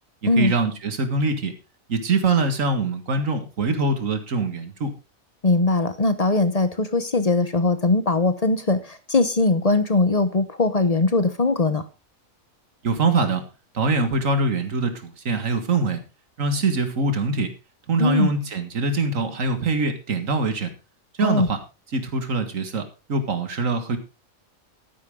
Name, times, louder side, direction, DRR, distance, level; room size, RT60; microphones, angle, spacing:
voice 1, 0.4-1.5 1.9-4.9 12.8-13.4 13.7-16.0 16.4-17.5 17.9-20.7 21.2-21.6 21.9-22.8 23.1-24.0, right 3 dB, 70° right, 8 dB, 2.1 m, -23 dB
voice 2, 5.4-11.8 18.0-18.3 21.2-21.5, left 3 dB, 30° left, 11 dB, 0.9 m, -20 dB
12.5 x 10.0 x 3.7 m, 0.29 s
omnidirectional pair, 1.4 m